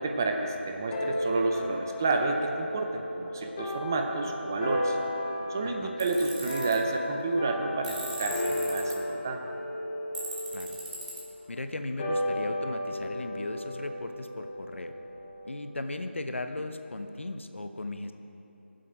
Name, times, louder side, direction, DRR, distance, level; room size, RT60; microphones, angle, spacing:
voice 1, 0.0-5.0 5.5-9.4, right 3 dB, 15° right, 3 dB, 0.4 m, -30 dB
sound 1, 0.9-15.6, left 1 dB, 25° left, 1.1 m, -34 dB
voice 2, 5.6-5.9 10.5-10.8 11.5-14.9 15.4-18.1, left 2 dB, 70° left, 8 dB, 0.9 m, -37 dB
Tools, 6.0-6.8 7.8-8.9 10.1-11.2, right 2 dB, 40° right, 2.3 m, -39 dB
18.0 x 7.6 x 5.0 m, 3.0 s
figure-of-eight pair, 170°, 7 cm